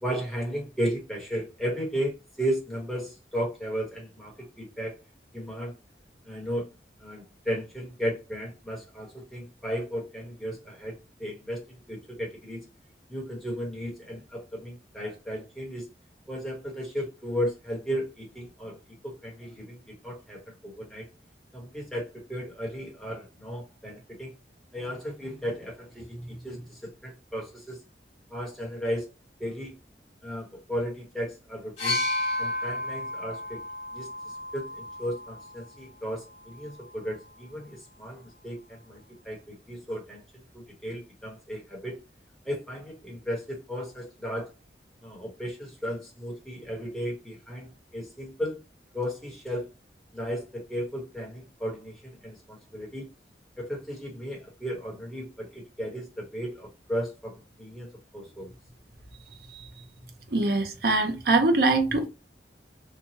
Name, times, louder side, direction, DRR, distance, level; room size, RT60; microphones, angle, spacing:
voice 1, 0.0-2.1 2.4-5.0 5.3-5.7 6.2-6.7 7.0-10.9 11.2-12.7 13.1-15.9 16.3-18.8 19.0-21.1 21.5-24.3 24.7-27.8 28.3-29.1 29.4-29.7 30.2-32.0 32.4-33.6 33.9-41.9 42.4-44.5 45.0-48.6 48.9-49.7 50.1-53.1 53.6-58.5, equal, ahead, 1.1 m, -35 dB
sound 1, 31.8-35.6 36.6-36.8, left 2 dB, 35° left, 1.0 m, -32 dB
voice 2, 60.3-62.1, right 2 dB, 55° right, 0.6 m, -23 dB
3.0 x 2.3 x 2.8 m
head